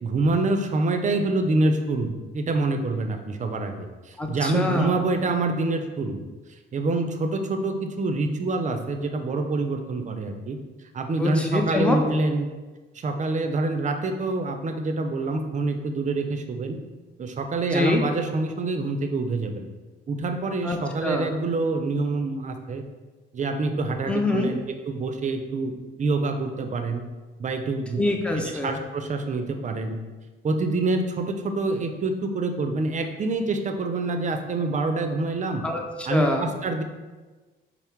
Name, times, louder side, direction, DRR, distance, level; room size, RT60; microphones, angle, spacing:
voice 1, 0.0-6.2 6.7-10.6 10.9-12.5 12.9-16.8 17.2-19.7 20.1-22.8 23.3-25.7 26.0-27.0 27.4-28.0 28.6-30.0 30.4-35.6 36.0-36.8, right 2 dB, 40° right, 6 dB, 0.5 m, -26 dB
voice 2, 4.2-4.9 11.2-12.0 17.7-18.0 20.6-21.3 24.1-24.5 28.0-28.8 35.6-36.5, left 2 dB, 5° left, 2 dB, 0.6 m, -25 dB
5.5 x 2.1 x 4.5 m, 1.3 s
cardioid pair, 90°, 20 cm